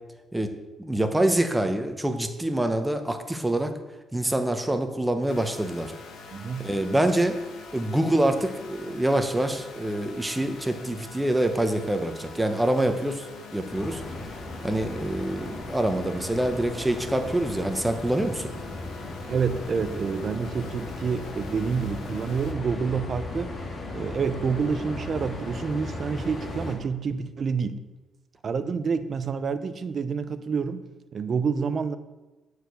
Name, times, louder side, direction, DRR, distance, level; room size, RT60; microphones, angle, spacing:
voice 1, 0.8-3.7 4.1-5.9 6.6-7.4 7.7-13.2 13.5-14.0 14.6-18.5, right 1 dB, 10° right, 6 dB, 1.0 m, -25 dB
sound 1, 5.3-22.5, left 4 dB, 75° left, 1.3 m, -44 dB
voice 2, 6.3-6.7 19.2-23.5 23.9-27.8 28.4-30.8 31.1-32.0, right 5 dB, 50° right, 12 dB, 0.6 m, -28 dB
sound 2, 13.7-26.8, left 2 dB, 45° left, 1.9 m, -37 dB
8.7 x 4.8 x 6.9 m, 1.1 s
cardioid pair, 90°, 0 cm